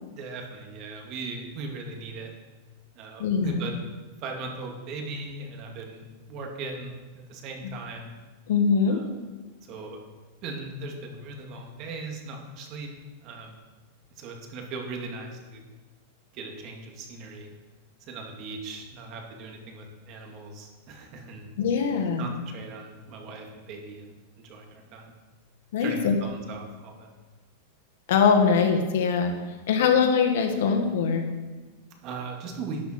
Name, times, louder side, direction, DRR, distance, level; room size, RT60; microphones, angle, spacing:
voice 1, 0.1-2.3 2.9-3.7 4.2-8.1 8.9-9.1 9.6-10.0 10.4-12.9 13.2-13.6 14.2-15.6 16.3-17.5 18.0-21.5 22.2-25.1 25.8-27.1 31.8-32.8, right 3 dB, 40° right, 2 dB, 2.2 m, -39 dB
voice 2, 3.2-3.6 8.5-9.0 21.6-22.3 25.7-26.2 28.1-29.3 29.7-31.2, left 6 dB, 70° left, 4 dB, 1.8 m, -22 dB
11.5 x 9.1 x 4.5 m, 1.3 s
supercardioid pair, 145°, 0 cm